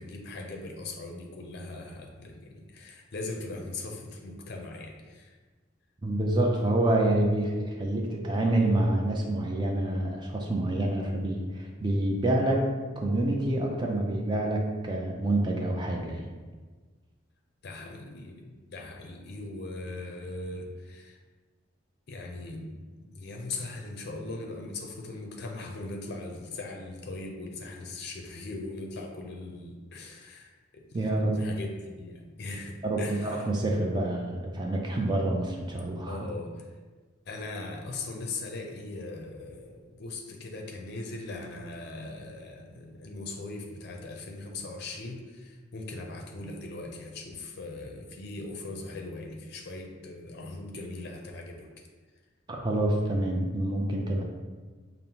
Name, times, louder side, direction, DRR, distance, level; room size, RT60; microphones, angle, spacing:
voice 1, 0.0-5.3 17.6-21.2 22.1-31.1 31.3-33.5 36.0-36.7 37.3-51.7, left 2 dB, 55° left, 2 dB, 0.5 m, -40 dB
voice 2, 6.0-12.6 13.0-16.2 30.9-31.3 32.8-36.2 52.5-54.2, right 1 dB, 25° right, 0 dB, 0.4 m, -27 dB
5.2 x 2.0 x 2.8 m, 1.4 s
head